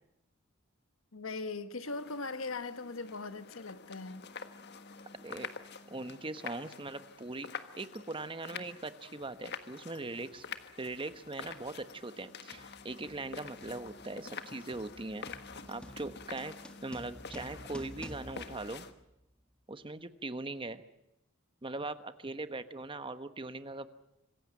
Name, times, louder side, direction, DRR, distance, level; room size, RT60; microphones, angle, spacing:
voice 1, 1.1-4.2, left 3 dB, 70° left, 1.4 m, -39 dB
sound 1, 1.8-18.9, left 6 dB, 55° left, 1.5 m, -47 dB
voice 2, 5.2-5.5 5.9-7.5 7.8-10.4 10.8-15.3 15.7-16.5 16.8-18.9 19.7-20.8 21.6-23.9, right 2 dB, 25° right, 1.2 m, -40 dB
sound 2, 9.2-9.4 10.3-10.6 10.9-19.4, equal, 5° left, 1.5 m, -52 dB
26.5 x 16.0 x 9.0 m
head